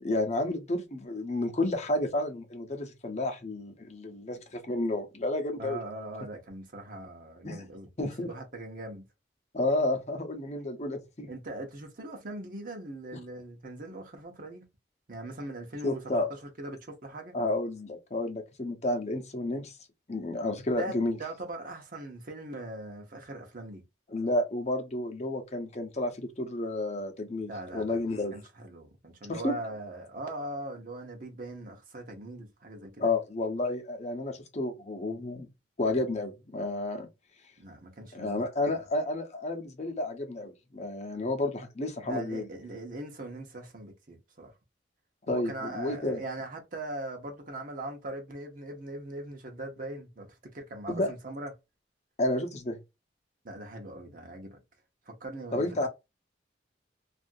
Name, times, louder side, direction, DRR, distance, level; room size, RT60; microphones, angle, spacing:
voice 1, 0.0-5.8 7.4-7.6 8.0-8.3 9.5-11.3 15.8-16.3 17.3-19.8 20.1-21.2 24.1-28.4 29.3-29.5 33.0-35.5 35.8-37.1 38.1-42.5 45.3-46.2 50.9-51.1 52.2-52.8 55.5-55.9, left 2 dB, 40° left, 0.8 m, -31 dB
voice 2, 5.6-9.1 11.3-14.6 15.1-17.3 20.8-23.8 27.5-33.1 37.6-38.8 42.0-44.5 45.3-50.3 50.5-51.5 53.4-54.6 55.1-55.9, right 1 dB, 50° right, 0.8 m, -40 dB
2.7 x 2.5 x 2.6 m
head